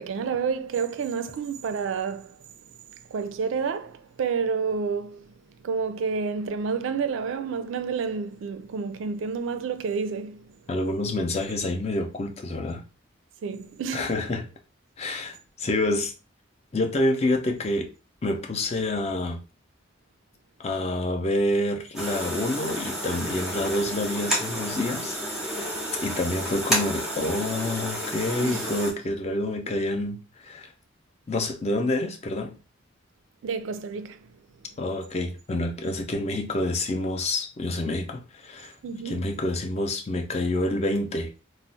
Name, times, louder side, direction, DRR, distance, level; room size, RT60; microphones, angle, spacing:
voice 1, 0.0-2.4 3.1-5.3 5.6-10.6 13.4-14.1 28.4-28.6 33.4-34.3 38.8-39.3, right 5 dB, 75° right, 0.3 m, -29 dB
voice 2, 10.7-12.8 13.9-14.5 15.0-16.1 16.7-17.9 18.2-19.4 20.6-30.7 31.3-32.6 34.8-38.8 39.0-41.3, left 2 dB, 30° left, 0.4 m, -28 dB
sound 1, 21.9-28.9, equal, ahead, 0.7 m, -30 dB
2.3 x 2.0 x 3.8 m
head